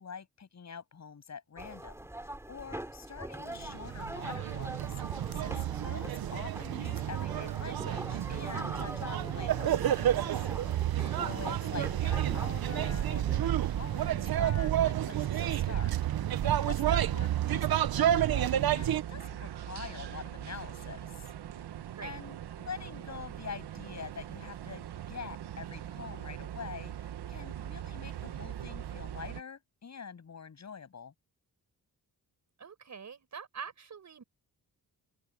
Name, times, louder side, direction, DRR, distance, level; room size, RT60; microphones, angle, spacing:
voice 1, 0.0-2.0 2.5-5.0 5.3-10.1 11.1-15.9 16.4-21.3 22.0-31.1, left 6 dB, 45° left, 7.4 m, -45 dB
sound 1, 1.6-13.4, right 1 dB, 5° right, 2.9 m, -43 dB
sound 2, 3.6-19.0, right 11 dB, 65° right, 0.8 m, -30 dB
sound 3, 11.2-29.4, right 11 dB, 85° right, 1.2 m, -42 dB
voice 2, 32.6-34.2, right 6 dB, 45° right, 6.1 m, -45 dB
open air
wide cardioid pair, 180°, 39 cm